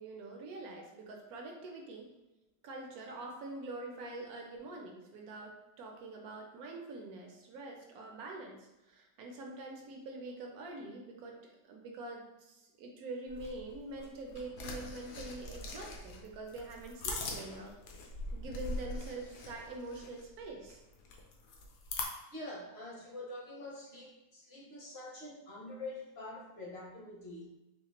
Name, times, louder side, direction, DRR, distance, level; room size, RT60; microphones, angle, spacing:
voice 1, 0.0-2.1 2.6-17.7 18.3-20.8, right 2 dB, 70° right, 1 dB, 1.1 m, -45 dB
sound 1, 13.3-22.0, left 2 dB, 75° left, 1.2 m, -43 dB
voice 2, 22.3-27.5, left 2 dB, 50° left, -3 dB, 0.8 m, -45 dB
4.3 x 2.4 x 2.9 m, 0.98 s
omnidirectional pair, 1.8 m